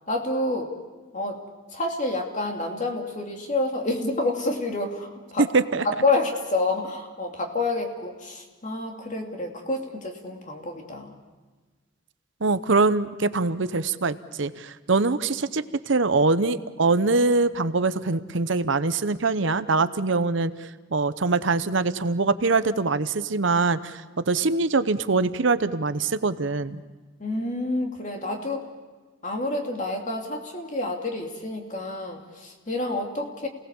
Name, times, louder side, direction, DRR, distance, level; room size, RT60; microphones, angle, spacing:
voice 1, 0.1-0.7 1.1-1.4 1.7-5.5 5.9-11.1 27.2-28.7 29.2-33.5, left 2 dB, 40° left, 2 dB, 2.7 m, -28 dB
voice 2, 5.4-5.9 12.4-26.8, right 3 dB, 65° right, 12 dB, 0.8 m, -23 dB
28.5 x 18.5 x 7.1 m, 1.3 s
head